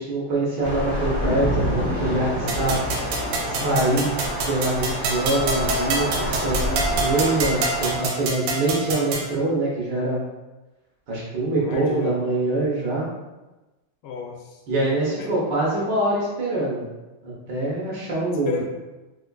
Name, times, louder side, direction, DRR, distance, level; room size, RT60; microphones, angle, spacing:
voice 1, 0.0-2.8 3.4-4.1 4.5-10.2 11.1-13.1 14.7-16.8 17.2-18.6, right 2 dB, 65° right, -6 dB, 1.2 m, -24 dB
Thunder / Rain, 0.6-8.0, equal, 60° left, 0.5 m, -27 dB
sound 1, 2.5-9.3, right 3 dB, 90° right, 1.5 m, -27 dB
voice 2, 3.6-4.1 11.6-12.2 14.0-14.6 15.2-15.3 18.4-18.6, left 6 dB, 80° left, 1 dB, 1.4 m, -31 dB
4.4 x 2.4 x 2.2 m, 1.1 s
omnidirectional pair, 2.4 m